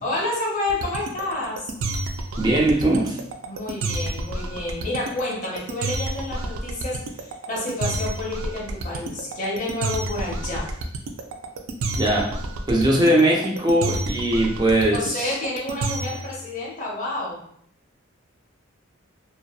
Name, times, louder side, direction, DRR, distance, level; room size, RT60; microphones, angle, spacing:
voice 1, 0.0-1.7 3.5-10.8 14.8-17.4, left 2 dB, 40° left, -5 dB, 0.8 m, -29 dB
sound 1, 0.7-16.3, right 2 dB, 85° right, 0.3 m, -29 dB
voice 2, 2.4-3.2 11.9-12.3 12.7-15.3, right 1 dB, 20° right, -2 dB, 0.5 m, -20 dB
2.7 x 2.1 x 2.2 m, 0.65 s
head